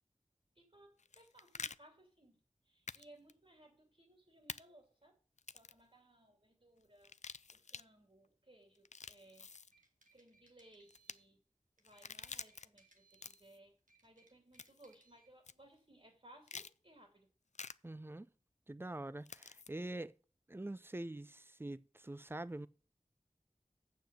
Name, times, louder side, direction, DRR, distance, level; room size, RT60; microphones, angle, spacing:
voice 1, 0.5-5.2 5.5-7.2 7.5-9.5 10.1-11.4 11.8-13.8 14.0-17.3, right 1 dB, 50° right, 2.7 m, -63 dB
sound 1, 1.0-1.8 2.9-3.0 3.3-3.4 4.5-4.6 5.4-5.8 7.0-7.8 8.7-9.7 10.9-11.1 11.8-12.7 13.1-13.6 14.6-14.9 15.4-15.5 16.5-16.7 17.5-17.7 19.2-19.7, left 5 dB, 65° left, 0.4 m, -48 dB
sound 2, 9.4-11.3 11.8-13.5 13.8-15.3, right 3 dB, 90° right, 1.6 m, -70 dB
voice 2, 17.8-18.3 18.7-20.1 20.5-22.7, right 1 dB, 15° right, 0.4 m, -45 dB
7.5 x 6.9 x 7.6 m
wide cardioid pair, 45°, 13 cm